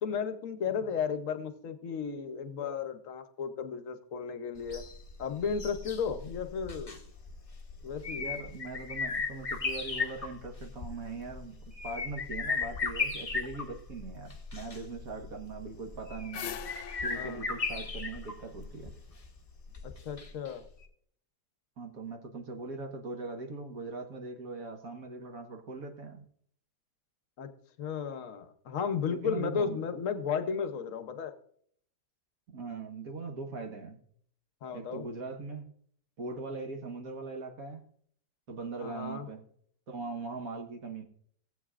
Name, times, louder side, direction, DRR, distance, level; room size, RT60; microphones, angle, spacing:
voice 1, 0.0-4.8 5.2-7.0 7.8-8.2 17.1-17.5 19.8-20.6 27.4-27.5 27.8-31.3 34.6-35.0 38.8-39.3, left 6 dB, 55° left, 9 dB, 1.1 m, -34 dB
sound 1, 4.6-20.5 20.8-20.9, left 4 dB, 25° left, 0.8 m, -37 dB
voice 2, 8.2-11.6 11.8-16.5 17.0-18.9 21.8-26.2 29.1-29.8 32.5-34.0 34.7-35.7 36.2-37.9 38.5-39.4 39.9-41.0, right 3 dB, 55° right, 3 dB, 1.6 m, -40 dB
sound 2, 15.8-19.0, left 9 dB, 85° left, 1.3 m, -44 dB
18.0 x 8.2 x 2.4 m, 0.62 s
omnidirectional pair, 1.8 m